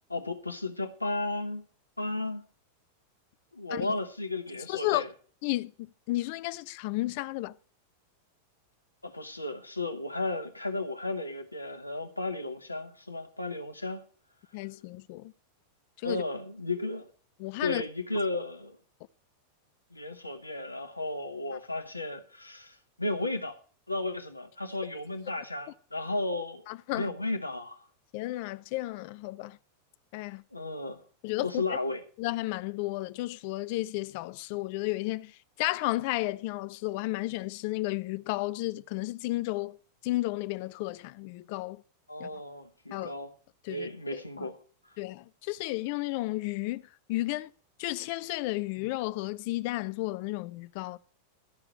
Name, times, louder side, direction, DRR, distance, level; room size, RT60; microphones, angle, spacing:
voice 1, 0.1-1.6 2.0-2.4 3.5-5.1 9.0-14.0 16.0-17.1 17.6-18.8 19.9-23.6 23.9-26.6 26.9-27.8 30.5-31.0 31.4-32.0 42.1-43.3 43.7-44.6, left 2 dB, 85° left, 1.1 m, -34 dB
voice 2, 4.7-5.1 5.4-7.6 14.5-15.3 16.0-16.2 17.4-17.8 26.7-27.1 28.1-29.6 30.1-30.4 31.2-31.8 32.2-41.8 42.2-42.3 42.9-43.1 43.6-44.5 45.0-46.8 47.1-47.5 47.8-51.0, left 19 dB, 45° left, 0.4 m, -33 dB
13.0 x 4.9 x 8.0 m
figure-of-eight pair, 90°, 0 cm